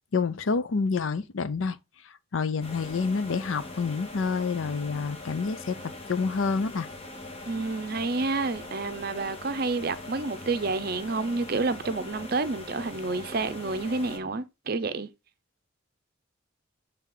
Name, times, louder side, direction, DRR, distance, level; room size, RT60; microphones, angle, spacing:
voice 1, 0.1-1.8 2.3-5.8 6.1-6.9, left 4 dB, 70° left, 0.5 m, -28 dB
sound 1, 2.6-14.2, left 2 dB, 30° left, 1.0 m, -42 dB
voice 2, 7.5-15.1, right 3 dB, 45° right, 0.6 m, -29 dB
7.4 x 3.4 x 3.7 m
head